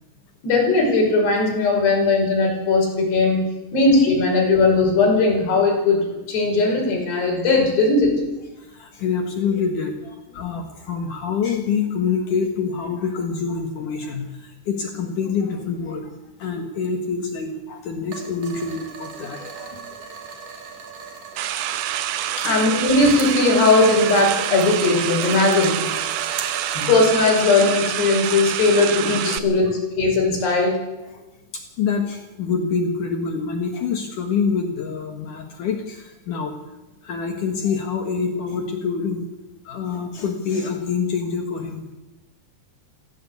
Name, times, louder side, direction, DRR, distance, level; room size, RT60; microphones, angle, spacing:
voice 1, 0.4-3.4 3.7-6.0 6.3-8.1 22.4-25.8 26.7-29.6 30.0-30.8, left 3 dB, 80° left, 0 dB, 7.8 m, -18 dB
voice 2, 8.6-16.1 16.4-20.0 22.3-22.6 29.3-29.6 31.1-31.2 31.5-36.5 37.0-39.3 39.6-41.8, left 5 dB, 60° left, 4 dB, 2.8 m, -26 dB
sound 1, 18.1-26.9, right 6 dB, 55° right, 3.3 m, -37 dB
sound 2, 21.4-29.4, right 12 dB, 80° right, 1.8 m, -27 dB
19.5 x 16.0 x 8.4 m, 1.1 s
omnidirectional pair, 4.7 m